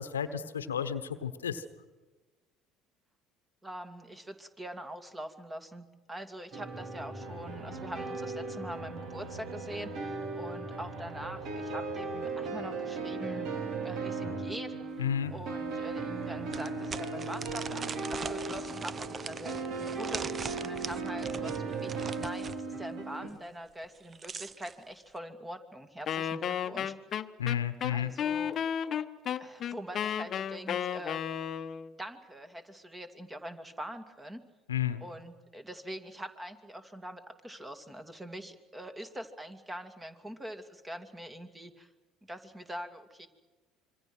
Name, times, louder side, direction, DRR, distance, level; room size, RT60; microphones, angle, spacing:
voice 1, 0.0-1.6 15.0-15.3 27.4-28.1 34.7-35.0, left 9 dB, 90° left, 12 dB, 1.1 m, -32 dB
voice 2, 3.6-13.5 13.8-15.0 15.3-26.9 27.9-28.6 29.4-31.2 32.0-34.4 35.0-41.9 42.3-43.3, right 1 dB, 15° right, 9 dB, 2.6 m, -43 dB
sound 1, 6.5-23.3, right 3 dB, 60° right, 3.7 m, -37 dB
sound 2, 15.0-15.1 15.6-15.7 16.5-22.6 23.8-24.8, right 5 dB, 35° right, 0.8 m, -41 dB
Wind instrument woodwind instrument, 26.1-31.9, left 9 dB, 45° left, 1.0 m, -33 dB
26.0 x 24.0 x 6.3 m, 1.3 s
hypercardioid pair, 65°, 0 cm